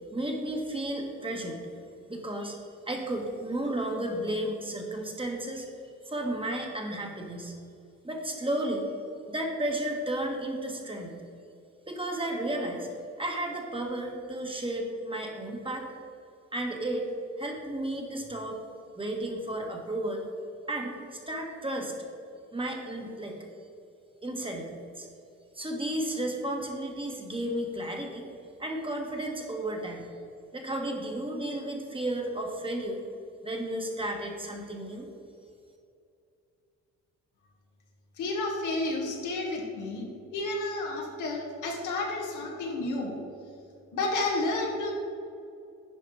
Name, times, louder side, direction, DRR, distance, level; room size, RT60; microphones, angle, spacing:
voice 1, 0.1-1.6 2.1-2.6 2.8-5.7 6.0-7.5 8.0-8.9 9.3-11.2 11.9-12.9 13.2-15.9 16.5-17.1 17.4-18.6 19.0-20.2 20.7-21.9 22.5-23.4 24.2-25.1 25.5-28.3 28.6-30.1 30.5-33.0 33.4-35.1, right 1 dB, 15° right, 1 dB, 1.5 m, -33 dB
voice 2, 38.2-43.1 43.9-44.9, left 2 dB, 80° left, 0 dB, 1.8 m, -31 dB
10.0 x 4.8 x 4.8 m, 2.6 s
cardioid pair, 90°, 30 cm